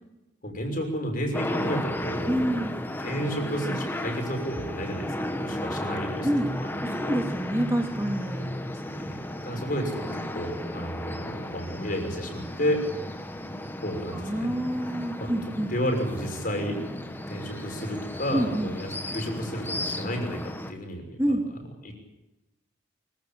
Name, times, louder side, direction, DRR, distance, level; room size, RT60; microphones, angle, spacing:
voice 1, 0.4-2.6 3.0-5.1 5.3-6.3 8.9-12.8 13.8-14.5 15.1-15.3 15.7-16.8 17.3-21.4 21.8-21.9, equal, 45° left, 3 dB, 6.1 m, -31 dB
sound 1, 1.3-20.7, left 1 dB, 10° left, 1.3 m, -34 dB
voice 2, 2.3-2.8 6.2-6.5 6.8-8.5 14.1-15.7 18.3-18.7 21.2-21.4, right 1 dB, 15° right, 3 dB, 2.0 m, -27 dB
24.5 x 16.0 x 9.0 m, 1.0 s
head